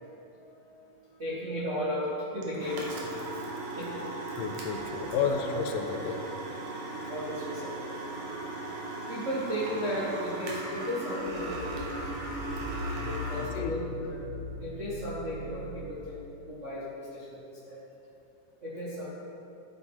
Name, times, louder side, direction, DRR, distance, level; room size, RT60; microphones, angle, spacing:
voice 1, 0.4-3.4 3.8-4.1 4.8-5.3 7.1-8.0 9.1-12.0 12.9-14.2 14.6-17.8 18.6-19.1, equal, 45° right, -7 dB, 0.9 m, -35 dB
sound 1, 2.4-13.5, right 2 dB, 90° right, 3.1 m, -37 dB
voice 2, 4.4-6.2 13.4-13.8, left 6 dB, 90° left, 5 dB, 2.4 m, -31 dB
sound 2, 11.2-15.9, left 2 dB, 75° left, 0.5 m, -40 dB
14.0 x 8.5 x 4.5 m, 2.9 s
omnidirectional pair, 3.7 m